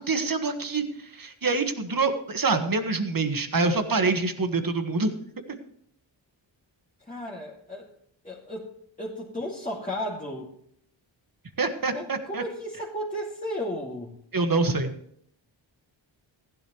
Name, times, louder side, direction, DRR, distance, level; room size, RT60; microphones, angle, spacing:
voice 1, 0.0-5.2 11.6-12.4 14.3-14.9, right 3 dB, 45° right, 7 dB, 1.7 m, -26 dB
voice 2, 7.0-7.9 8.2-8.7 9.0-10.5 11.9-14.2, equal, 15° left, -5 dB, 2.5 m, -34 dB
15.5 x 12.0 x 3.1 m, 0.68 s
wide cardioid pair, 70°, 47 cm